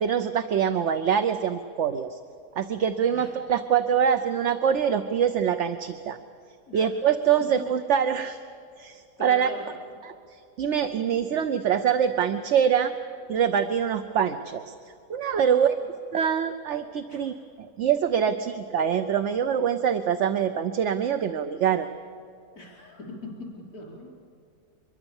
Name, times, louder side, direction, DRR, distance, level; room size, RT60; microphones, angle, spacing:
voice 1, 0.0-2.2 2.6-6.2 6.7-8.4 8.8-9.5 10.6-12.9 13.3-14.7 15.1-15.8 16.1-21.9, right 8 dB, 60° right, 9 dB, 1.0 m, -24 dB
voice 2, 9.2-9.6 15.3-15.9 17.1-17.3 22.5-23.3 23.7-24.1, left 2 dB, 80° left, -2 dB, 4.9 m, -41 dB
24.5 x 22.0 x 7.2 m, 2.5 s
omnidirectional pair, 1.5 m